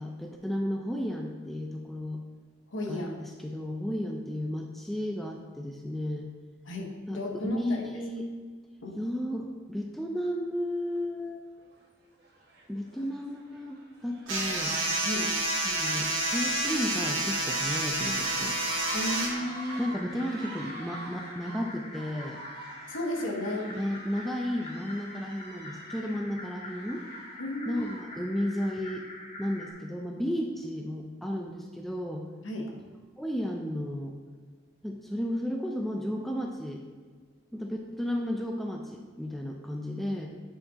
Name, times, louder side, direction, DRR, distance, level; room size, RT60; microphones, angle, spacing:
voice 1, 0.0-2.2 2.9-6.3 7.1-8.3 9.0-11.4 12.7-14.8 15.6-18.6 19.8-22.4 23.7-27.0 27.7-29.1 29.4-32.3 33.1-34.2 34.8-36.8 37.5-40.3, equal, ahead, 1 dB, 0.4 m, -33 dB
voice 2, 2.7-3.1 6.7-7.9 8.8-8.9 15.0-15.3 18.9-19.9 22.9-23.8 27.4-27.9 32.4-32.7, left 1 dB, 70° left, 0 dB, 1.0 m, -33 dB
sound 1, 10.8-10.9 11.6-11.8 12.2-28.2, right 2 dB, 50° right, 1.1 m, -46 dB
sound 2, 14.3-19.3, right 2 dB, 80° right, 1.8 m, -29 dB
sound 3, 15.5-29.7, left 1 dB, 30° left, 0.8 m, -45 dB
8.9 x 4.7 x 2.8 m, 1.5 s
head